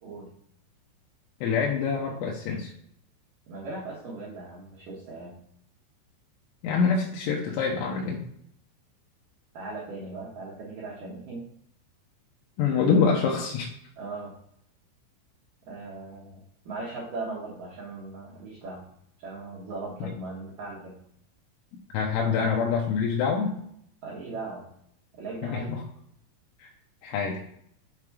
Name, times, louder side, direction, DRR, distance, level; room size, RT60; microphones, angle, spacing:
voice 1, 0.0-0.3 3.5-5.4 9.5-11.4 12.7-12.9 14.0-14.3 15.7-18.9 19.2-21.0 22.1-22.4 24.0-24.7 25.2-25.8, right 3 dB, 90° right, -4 dB, 1.8 m, -38 dB
voice 2, 1.4-2.7 6.6-8.2 12.6-13.7 20.0-20.1 21.9-23.5 25.4-25.8 26.6-26.7 27.0-27.4, left 5 dB, 85° left, -1 dB, 3.1 m, -25 dB
7.6 x 3.5 x 4.6 m, 0.71 s
omnidirectional pair, 5.8 m